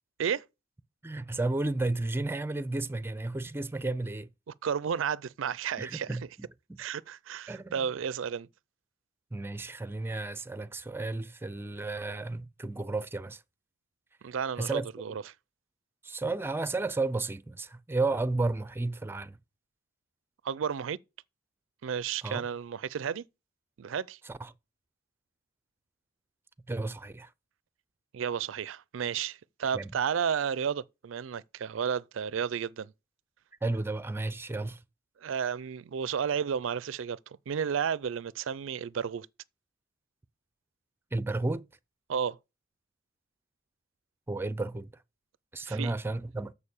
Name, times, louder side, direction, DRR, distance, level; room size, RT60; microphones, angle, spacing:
voice 1, 1.0-4.3 5.8-6.5 7.5-7.8 9.3-13.4 14.6-14.9 16.0-19.4 22.2-22.4 24.3-24.5 26.7-27.3 29.7-29.9 33.6-34.8 41.1-41.7 44.3-44.9 45.5-46.5, right 2 dB, 10° right, 0.5 m, -32 dB
voice 2, 4.5-6.1 6.8-8.5 14.2-15.2 20.4-21.0 21.8-23.2 23.8-24.2 28.1-32.9 35.2-37.2 37.5-39.3 42.1-42.4 45.7-45.9, right 7 dB, 70° right, 0.4 m, -32 dB
6.9 x 6.6 x 7.1 m
head